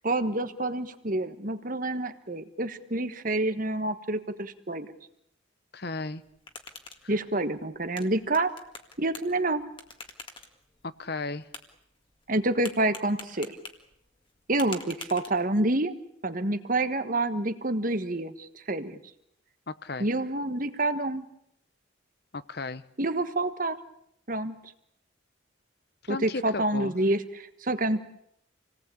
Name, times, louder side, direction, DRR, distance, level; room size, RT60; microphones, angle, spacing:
voice 1, 0.0-4.9 7.1-8.5 9.0-9.7 12.3-13.6 14.5-16.0 16.2-19.0 20.0-21.3 23.0-23.8 24.3-24.6 26.1-28.0, right 2 dB, 40° right, 10 dB, 1.4 m, -28 dB
voice 2, 5.7-6.2 11.0-11.5 19.7-20.1 22.3-22.8 26.1-26.9, left 3 dB, 55° left, 14 dB, 0.9 m, -34 dB
sound 1, 6.1-15.8, left 4 dB, 25° left, 2.0 m, -47 dB
28.0 x 18.5 x 8.6 m, 0.76 s
head